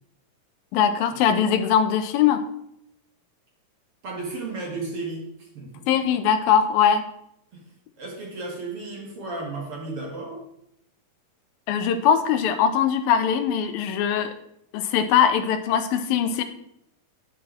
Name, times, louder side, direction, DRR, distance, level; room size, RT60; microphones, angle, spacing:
voice 1, 0.7-2.4 5.9-7.0 11.7-14.3 14.7-16.4, left 8 dB, 85° left, 8 dB, 2.6 m, -21 dB
voice 2, 4.0-5.9 7.5-10.4, right 3 dB, 45° right, -1 dB, 2.3 m, -34 dB
10.0 x 9.5 x 4.5 m, 0.76 s
omnidirectional pair, 4.2 m